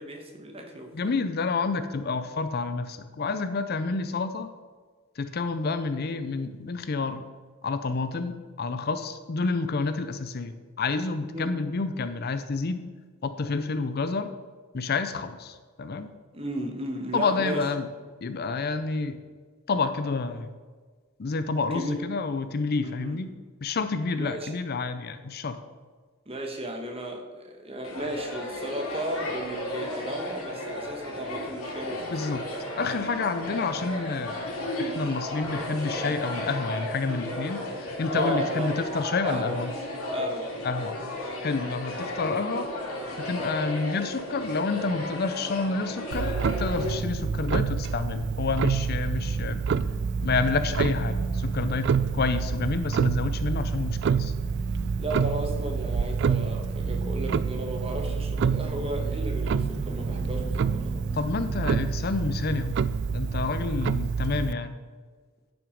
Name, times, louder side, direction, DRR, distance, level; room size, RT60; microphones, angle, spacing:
voice 1, 0.0-1.2 11.3-11.5 16.3-17.6 21.7-22.0 22.8-23.2 24.1-24.5 26.3-32.1 38.1-38.7 39.2-39.6 40.1-40.5 55.0-61.1, right 1 dB, 25° right, 3 dB, 1.3 m, -34 dB
voice 2, 0.9-4.5 5.2-7.3 7.6-12.8 13.2-14.3 14.7-16.1 17.1-17.9 18.2-19.2 19.7-20.5 21.2-23.3 23.6-25.6 32.0-32.5 32.8-39.7 40.6-41.0 41.4-42.7 43.2-46.3 46.6-49.6 50.2-54.3 61.1-62.8 63.1-64.8, left 4 dB, 45° left, 11 dB, 0.5 m, -29 dB
sound 1, 27.8-46.9, left 1 dB, 85° left, 2.6 m, -34 dB
Clock, 46.1-64.5, right 6 dB, 55° right, 0.3 m, -28 dB
sound 2, 49.0-61.7, right 1 dB, 20° left, 1.4 m, -40 dB
11.0 x 6.0 x 5.1 m, 1.5 s
head